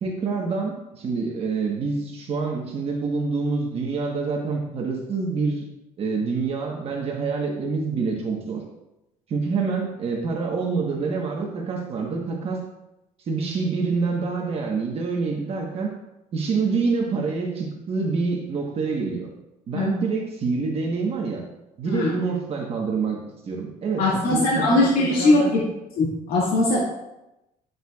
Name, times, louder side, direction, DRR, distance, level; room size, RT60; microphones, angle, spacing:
voice 1, 0.0-5.6 6.0-8.6 9.3-12.6 13.2-15.9 16.3-19.3 19.7-21.5 21.8-25.6, right 4 dB, 40° right, 0 dB, 1.2 m, -26 dB
voice 2, 24.0-25.6 26.0-26.8, left 2 dB, 75° left, -5 dB, 2.1 m, -20 dB
11.0 x 7.8 x 2.4 m, 0.92 s
cardioid pair, 165°, 15 cm